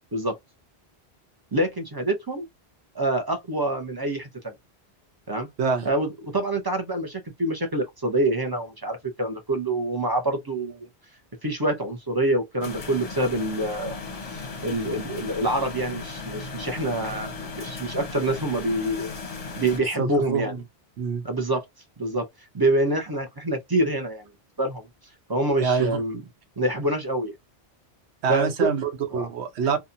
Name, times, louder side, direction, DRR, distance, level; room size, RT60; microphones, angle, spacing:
voice 1, 1.5-2.4 2.9-4.5 5.3-5.5 5.8-10.9 11.4-14.0 14.3-19.1 19.6-20.5 21.2-21.6 22.0-22.3 22.5-24.2 24.6-24.8 25.3-26.2 26.6-27.3 28.3-28.7 29.1-29.3, right 1 dB, 30° right, 0.5 m, -26 dB
sound 1, 12.6-19.8, left 4 dB, 40° left, 0.7 m, -36 dB
voice 2, 20.0-20.6 21.0-21.2 25.6-26.0 28.2-29.8, right 5 dB, 85° right, 0.9 m, -26 dB
2.8 x 2.3 x 2.5 m
omnidirectional pair, 1.1 m